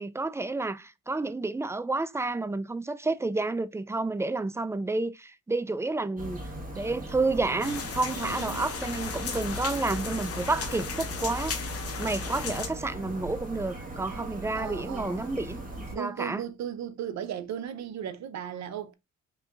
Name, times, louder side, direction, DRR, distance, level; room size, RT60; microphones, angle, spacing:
voice 1, 0.0-6.4 6.7-11.6 12.0-16.4, right 3 dB, 10° right, 0.3 m, -30 dB
sound 1, 6.2-16.0, right 1 dB, 25° right, 1.6 m, -39 dB
sound 2, 7.6-12.7, left 6 dB, 50° left, 1.1 m, -36 dB
voice 2, 8.1-8.7 14.1-15.3 15.9-18.9, right 9 dB, 65° right, 0.7 m, -37 dB
5.4 x 2.6 x 2.5 m
cardioid pair, 90°, 30 cm